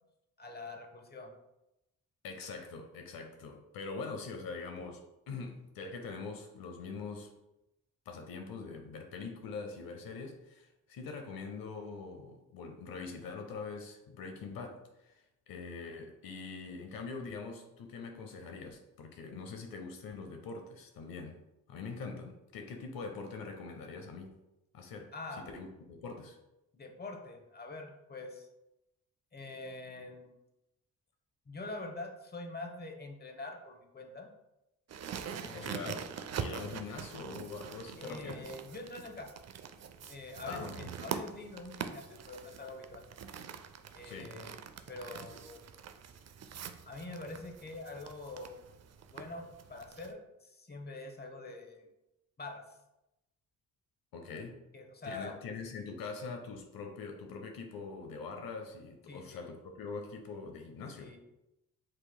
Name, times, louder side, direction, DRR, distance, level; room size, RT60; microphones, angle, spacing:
voice 1, 0.4-1.3 25.1-25.5 26.7-28.5 29.3-30.3 31.5-34.3 35.4-36.0 38.0-39.3 40.1-43.0 43.9-44.6 44.9-45.6 46.9-48.6 49.1-51.9 52.4-52.6 54.7-55.4 59.1-59.5 60.9-61.2, left 2 dB, 25° left, 4 dB, 0.9 m, -45 dB
voice 2, 2.2-7.3 8.1-21.4 21.7-24.3 24.7-26.4 35.5-38.6 40.5-40.9 44.0-44.4 54.1-54.6 55.0-61.2, left 4 dB, 75° left, 4 dB, 0.7 m, -43 dB
sound 1, 34.9-50.1, right 7 dB, 45° right, 0.5 m, -44 dB
7.6 x 3.0 x 2.2 m, 0.91 s
cardioid pair, 60°, 35 cm